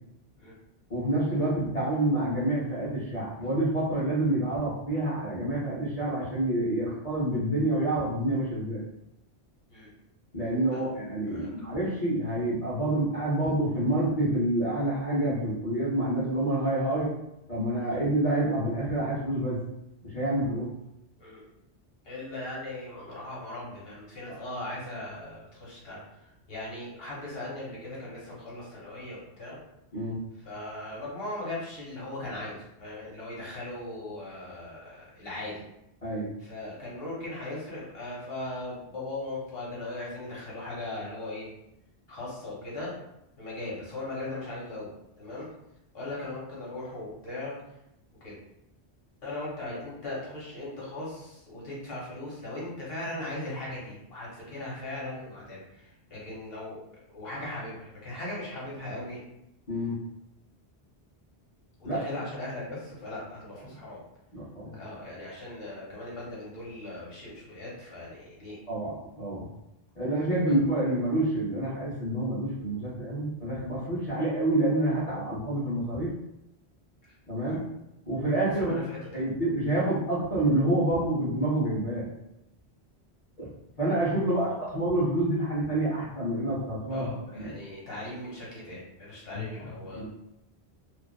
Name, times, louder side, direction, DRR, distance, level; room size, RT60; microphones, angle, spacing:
voice 1, 0.9-8.8 10.3-17.1 17.5-19.6 20.0-20.7 24.3-24.4 29.9-30.2 36.0-36.3 59.7-60.0 61.8-62.0 64.3-64.7 68.7-69.5 69.9-76.1 77.3-77.6 78.1-78.7 79.1-82.0 83.8-87.4 89.3-90.1, right 1 dB, 45° left, -8 dB, 0.7 m, -28 dB
voice 2, 22.0-29.6 30.4-35.6 36.4-41.5 42.1-42.9 43.4-45.5 45.9-47.5 48.2-48.3 49.2-56.8 57.1-59.2 61.8-64.0 64.7-68.6 70.2-70.5 77.0-77.1 77.4-77.6 78.6-79.3 84.2-84.5 86.9-90.1, left 2 dB, 65° left, -6 dB, 1.1 m, -39 dB
2.4 x 2.3 x 2.2 m, 0.85 s
omnidirectional pair, 1.1 m